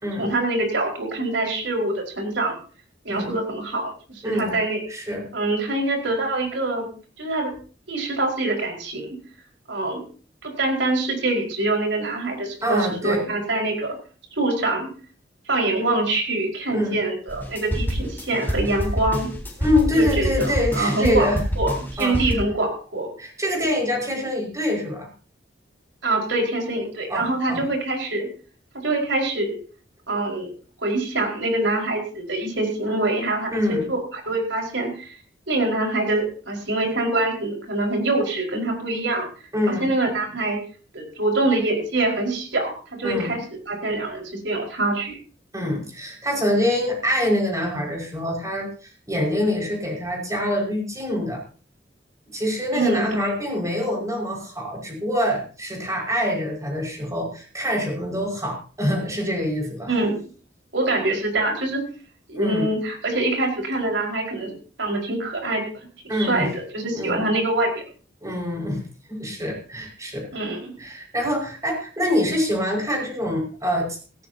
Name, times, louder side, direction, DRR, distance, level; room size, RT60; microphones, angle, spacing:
voice 1, 0.2-2.6 3.0-4.8 5.3-6.9 7.2-7.5 7.9-9.2 9.7-10.0 10.4-13.9 14.3-14.9 15.5-19.3 19.9-21.3 21.6-23.1 26.0-28.3 28.7-29.5 30.1-30.5 30.8-35.2 35.5-39.3 39.7-40.6 40.9-45.1 52.7-53.3 59.9-60.2 60.7-61.8 62.3-64.5 64.8-65.6 66.1-67.7 70.3-70.7, right 2 dB, 85° right, 1 dB, 5.0 m, -24 dB
voice 2, 4.2-4.6 4.9-5.3 12.6-13.2 16.7-17.0 19.6-21.4 22.0-22.2 23.2-25.1 27.1-27.7 33.5-33.9 39.5-39.9 43.0-43.4 45.5-51.4 52.3-60.0 62.3-62.7 66.1-66.5 66.9-67.3 68.2-68.8 69.1-70.4 70.8-74.0, left 1 dB, 20° right, -1 dB, 5.4 m, -25 dB
sound 1, 17.3-22.3, equal, 10° left, 3.9 m, -26 dB
17.0 x 17.0 x 2.8 m, 0.40 s
head